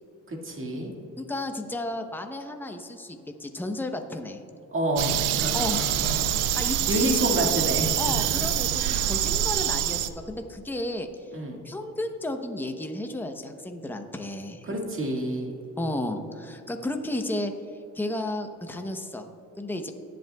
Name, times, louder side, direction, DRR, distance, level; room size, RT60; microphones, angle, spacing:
voice 1, 0.3-0.9 4.7-8.1 8.4-8.5 11.3-11.6 14.6-15.5, right 1 dB, 45° right, 0 dB, 1.9 m, -29 dB
voice 2, 1.2-4.4 5.5-5.9 6.3-7.3 8.0-11.1 11.6-14.7 15.8-17.5 17.9-19.3 19.6-19.9, left 1 dB, 5° left, 5 dB, 0.8 m, -33 dB
sound 1, 5.0-10.1, right 11 dB, 85° right, 0.5 m, -25 dB
18.5 x 7.7 x 2.3 m, 2.8 s
cardioid pair, 90°, 30 cm